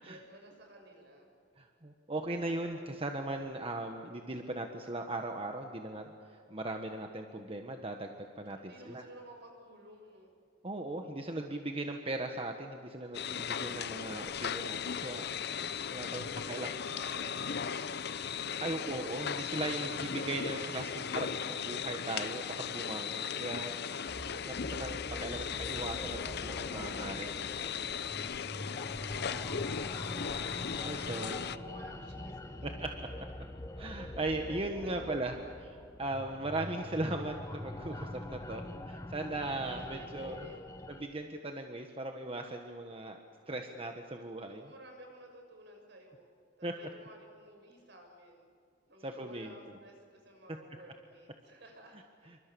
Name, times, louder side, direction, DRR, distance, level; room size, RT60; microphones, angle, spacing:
voice 1, 0.1-1.3 8.4-10.3 16.1-18.8 20.2-21.0 28.4-32.7 34.2-34.4 34.8-35.0 35.4-35.5 39.7-41.0 44.5-46.3 46.6-48.5 48.9-52.4, right 1 dB, 65° right, 3 dB, 6.6 m, -54 dB
voice 2, 1.6-9.0 10.6-15.3 15.9-16.7 18.6-23.7 24.3-27.5 30.8-31.4 32.6-32.9 33.8-40.4 40.9-43.2 43.5-44.7 46.6-46.7 49.0-49.5, right 2 dB, 30° right, 4 dB, 1.4 m, -38 dB
sound 1, 13.1-31.6, left 7 dB, 60° left, 0.7 m, -37 dB
sound 2, 24.1-41.1, left 1 dB, 15° left, 1.2 m, -44 dB
27.5 x 25.0 x 7.0 m, 2.4 s
head